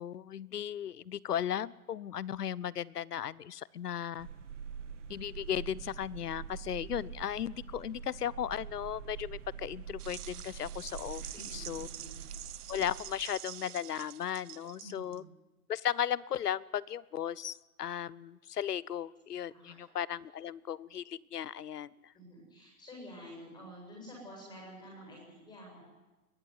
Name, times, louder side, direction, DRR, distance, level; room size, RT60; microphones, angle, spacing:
voice 1, 0.0-4.3 5.1-11.9 12.7-15.2 15.7-22.1, left 10 dB, 80° left, 23 dB, 0.9 m, -36 dB
sound 1, 4.2-13.3, right 7 dB, 50° right, 2.5 m, -45 dB
sound 2, 10.0-15.2, right 11 dB, 75° right, 0.7 m, -47 dB
voice 2, 11.3-12.1 14.8-15.3 19.5-19.8 22.1-25.8, equal, 10° left, -2 dB, 7.7 m, -50 dB
22.0 x 16.5 x 9.8 m, 1.1 s
hypercardioid pair, 160°, 46 cm